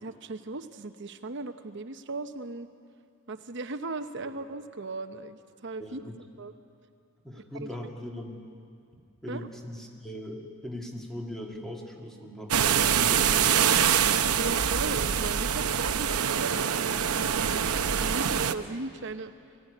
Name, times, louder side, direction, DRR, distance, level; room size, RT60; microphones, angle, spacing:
voice 1, 0.0-2.7 3.3-6.0 6.4-6.5 7.3-7.7 9.3-9.5 14.3-19.3, right 3 dB, 55° right, 9 dB, 0.9 m, -38 dB
voice 2, 5.8-6.2 7.2-8.4 9.2-13.9, equal, ahead, 0 dB, 2.1 m, -39 dB
sound 1, 12.5-18.5, right 8 dB, 90° right, 0.8 m, -25 dB
22.0 x 16.0 x 9.9 m, 2.4 s
head